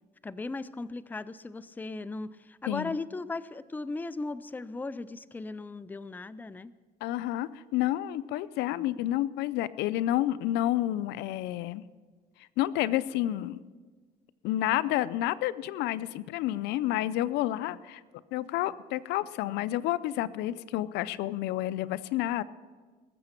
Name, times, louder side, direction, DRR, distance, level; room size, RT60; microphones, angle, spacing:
voice 1, 0.2-6.7, left 3 dB, 10° left, 15 dB, 0.4 m, -37 dB
voice 2, 2.7-3.0 7.0-11.9 12.6-13.6 14.4-18.0 18.3-22.4, left 14 dB, 90° left, 17 dB, 0.5 m, -30 dB
19.5 x 7.7 x 5.8 m, 1.4 s
cardioid pair, 110°, 17 cm